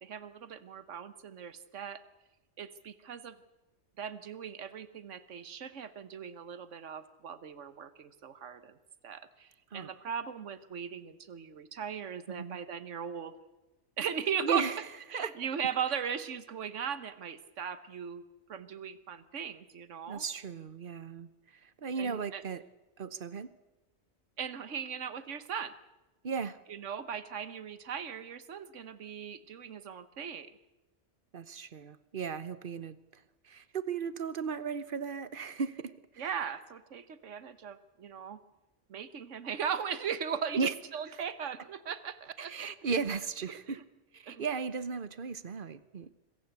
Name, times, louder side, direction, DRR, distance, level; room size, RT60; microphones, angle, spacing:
voice 1, 0.0-2.0 2.6-3.4 4.0-8.8 9.0-13.3 14.0-14.6 15.1-18.2 18.5-20.2 22.0-22.4 24.4-25.7 26.7-30.5 36.2-38.4 38.9-40.6 40.9-42.7 43.7-43.8 44.3-44.4, right 7 dB, 80° right, 13 dB, 1.4 m, -38 dB
voice 2, 12.3-12.6 14.4-14.8 15.1-15.3 20.1-22.6 23.0-23.5 26.2-26.6 31.3-36.2 40.6-40.7 42.4-43.8 44.1-46.1, right 5 dB, 50° right, 15 dB, 1.1 m, -36 dB
25.5 x 16.0 x 8.2 m, 1.1 s
omnidirectional pair, 1.2 m